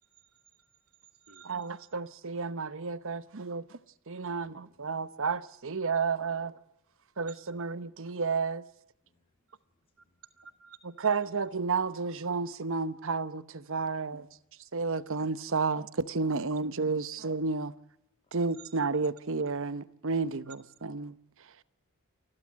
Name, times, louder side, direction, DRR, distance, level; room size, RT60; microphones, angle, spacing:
voice 1, 0.0-1.9 7.2-7.7 9.5-9.6 10.0-11.1 16.4-16.6 18.5-18.8 20.5-20.6, right 6 dB, 75° right, 2.0 m, -55 dB
voice 2, 1.5-3.8 4.1-6.5 7.2-8.6 11.0-14.3 14.7-17.7 18.3-21.2, right 4 dB, 60° right, 0.9 m, -31 dB
voice 3, 4.3-5.1 9.0-10.2 14.3-14.4 18.2-18.4, left 2 dB, 25° left, 3.1 m, -70 dB
29.0 x 12.0 x 7.5 m
head